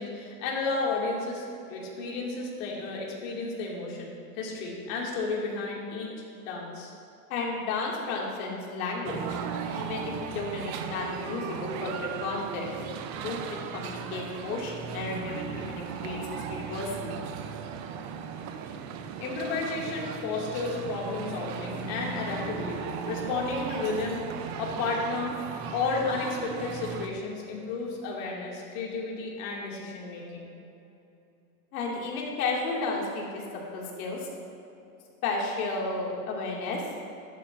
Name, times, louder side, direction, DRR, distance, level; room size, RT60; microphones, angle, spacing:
voice 1, 0.0-6.1 6.5-6.9 19.2-24.3 24.6-25.4 25.7-30.5, left 3 dB, 55° left, -3 dB, 2.5 m, -32 dB
voice 2, 7.3-9.4 9.7-12.7 13.1-17.1 31.7-33.4 33.7-34.3 35.2-36.8, left 3 dB, 75° left, -2 dB, 2.5 m, -33 dB
sound 1, 9.0-27.1, right 6 dB, 40° right, 0.7 m, -36 dB
12.0 x 11.5 x 2.6 m, 2.8 s
supercardioid pair, 140°, 44 cm